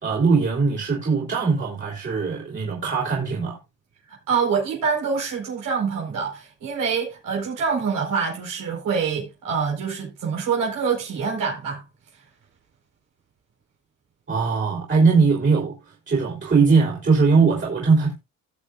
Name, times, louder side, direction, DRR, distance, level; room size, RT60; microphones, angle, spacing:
voice 1, 0.0-3.6 14.3-18.2, right 4 dB, 35° right, 3.6 m, -20 dB
voice 2, 4.3-11.8, right 6 dB, 90° right, 4.7 m, -25 dB
19.5 x 6.8 x 2.5 m
cardioid pair, 120°, 32 cm